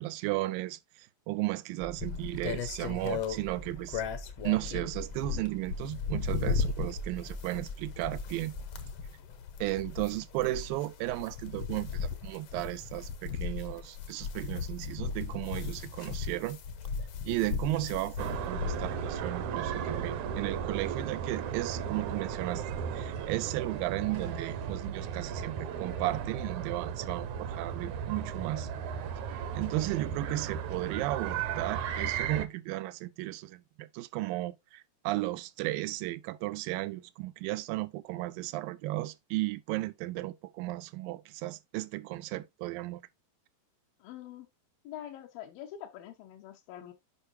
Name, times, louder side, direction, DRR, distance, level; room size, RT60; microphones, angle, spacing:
voice 1, 0.0-4.0 4.4-8.5 9.6-16.6 17.2-22.6 22.9-28.7 29.5-43.0, right 17 dB, 85° right, 2.3 m, -34 dB
sound 1, 1.8-8.9, right 2 dB, 20° right, 0.8 m, -46 dB
sound 2, 2.0-19.2, left 6 dB, 65° left, 1.6 m, -37 dB
sound 3, 18.2-32.5, right 8 dB, 70° right, 2.0 m, -35 dB
voice 2, 44.0-44.5 44.8-46.9, left 11 dB, 85° left, 2.7 m, -45 dB
8.3 x 5.5 x 2.7 m
omnidirectional pair, 4.1 m